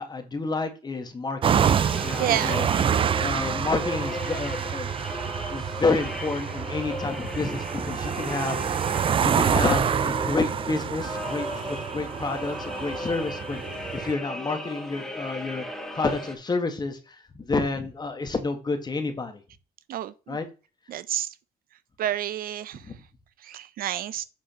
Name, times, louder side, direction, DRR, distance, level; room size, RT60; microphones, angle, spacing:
voice 1, 0.0-1.7 2.0-2.7 3.2-4.9 5.2-8.8 9.2-15.7 15.9-19.4 20.3-20.5 22.8-22.9, left 3 dB, 25° left, 1.8 m, -29 dB
sound 1, 1.4-14.1, right 8 dB, 30° right, 0.4 m, -27 dB
sound 2, 1.6-16.4, left 1 dB, 5° left, 2.2 m, -36 dB
voice 2, 2.2-2.6 19.9-20.1 20.9-21.3 22.0-22.8 23.5-24.2, right 12 dB, 60° right, 0.8 m, -29 dB
7.8 x 4.9 x 4.5 m
cardioid pair, 110°, 17 cm